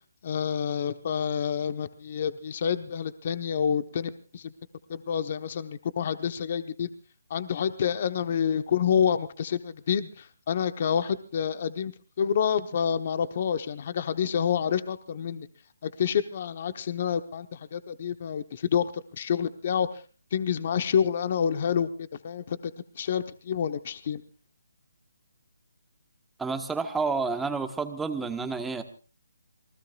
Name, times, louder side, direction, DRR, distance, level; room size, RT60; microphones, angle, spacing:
voice 1, 0.2-4.5 4.9-6.9 7.3-11.9 12.2-15.5 15.8-20.0 20.3-22.6 23.0-24.2, left 8 dB, 40° left, 10 dB, 1.0 m, -28 dB
voice 2, 26.4-28.8, right 4 dB, 5° right, 7 dB, 1.3 m, -29 dB
27.5 x 19.5 x 2.4 m, 0.35 s
hypercardioid pair, 155°, 0 cm